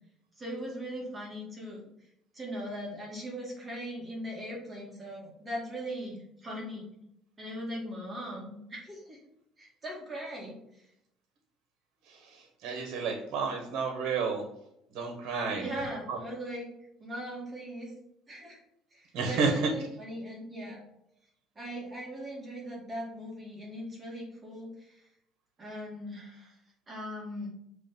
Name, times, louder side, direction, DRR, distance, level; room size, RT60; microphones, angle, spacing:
voice 1, 0.4-1.9 2.3-6.9 7.4-9.2 9.6-10.9 15.6-16.7 17.0-17.9 18.3-18.6 18.9-20.8 21.6-25.1 25.6-26.6 26.9-27.5, equal, 20° right, -3 dB, 2.2 m, -39 dB
voice 2, 12.1-14.4 14.9-15.7 16.1-16.2 19.1-19.7, right 4 dB, 70° right, 3 dB, 1.3 m, -31 dB
7.4 x 3.4 x 5.3 m, 0.79 s
cardioid pair, 145°, 0 cm